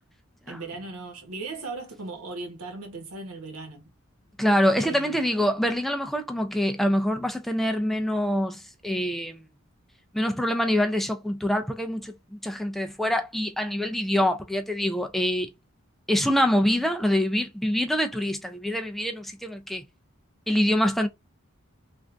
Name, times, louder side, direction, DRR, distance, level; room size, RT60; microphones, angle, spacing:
voice 1, 0.5-3.8 4.8-5.2, right 3 dB, 90° right, 1.1 m, -37 dB
voice 2, 4.4-9.4 10.1-15.5 16.1-19.8 20.5-21.1, equal, ahead, 0.3 m, -25 dB
3.4 x 2.5 x 2.4 m
head